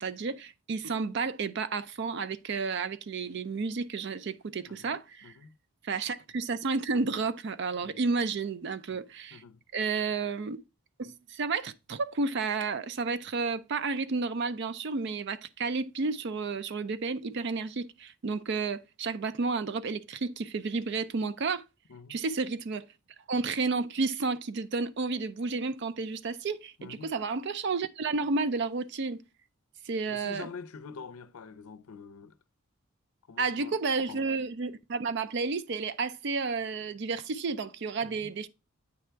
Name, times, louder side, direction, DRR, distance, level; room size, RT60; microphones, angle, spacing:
voice 1, 0.0-5.3 5.8-9.4 9.7-10.6 11.0-21.6 22.1-22.8 23.3-29.2 29.8-30.5 33.4-38.5, right 4 dB, 50° right, 0.4 m, -31 dB
voice 2, 4.7-5.0 5.2-5.6 7.8-8.0 8.9-9.0 9.3-9.6 21.9-22.2 26.8-27.1 30.1-32.4 33.3-33.8 34.1-34.3 38.0-38.3, left 5 dB, 75° left, 0.5 m, -46 dB
8.4 x 3.4 x 4.4 m
head